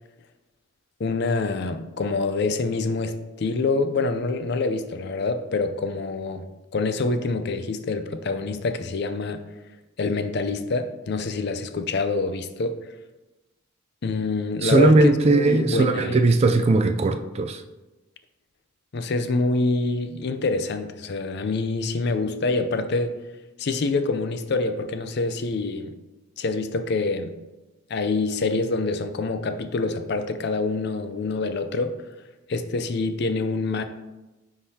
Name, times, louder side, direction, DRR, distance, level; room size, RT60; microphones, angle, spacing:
voice 1, 1.0-9.4 10.0-12.8 14.0-16.2 18.9-23.2 23.6-25.9 26.4-27.4 27.9-32.0 32.5-33.8, left 3 dB, 55° left, 0.5 m, -26 dB
voice 2, 14.6-17.6, right 3 dB, 30° right, 0.3 m, -19 dB
9.8 x 3.9 x 2.8 m
head